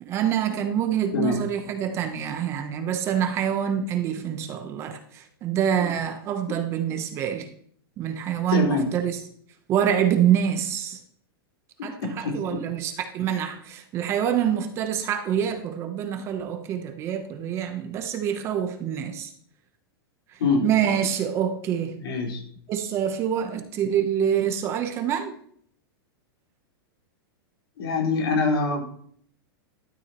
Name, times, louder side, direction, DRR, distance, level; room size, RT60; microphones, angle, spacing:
voice 1, 0.0-7.5 8.0-9.2 9.7-11.0 11.8-19.3 20.6-22.0 22.7-25.3, right 9 dB, 20° right, 0.8 m, -26 dB
voice 2, 8.5-8.9 11.8-12.6 20.4-20.7 22.0-22.4 27.8-28.8, left 4 dB, 85° left, 4.4 m, -25 dB
12.0 x 12.0 x 3.0 m
supercardioid pair, 170°, 13 cm